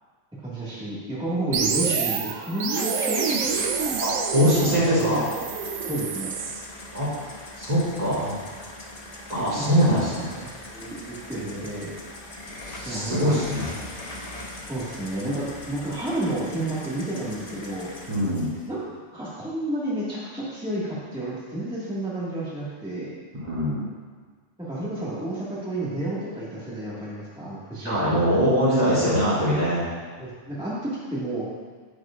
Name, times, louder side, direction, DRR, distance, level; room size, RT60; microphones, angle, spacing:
voice 1, 0.4-3.2 4.5-5.2 5.9-6.4 9.4-12.0 12.8-13.7 14.7-17.9 18.7-18.8 19.1-23.1 24.7-28.4 30.2-31.5, right 1 dB, 5° right, -10 dB, 1.7 m, -31 dB
sound 1, 1.5-6.6, right 6 dB, 80° right, 1.1 m, -27 dB
sound 2, 2.8-18.7, left 1 dB, 35° left, 0.9 m, -40 dB
voice 2, 4.0-5.2 6.9-7.1 7.6-8.4 9.3-10.1 12.7-13.7 18.1-18.5 23.3-23.9 27.8-29.8, equal, 30° right, -8 dB, 2.9 m, -22 dB
10.0 x 9.7 x 2.5 m, 1.5 s
omnidirectional pair, 1.3 m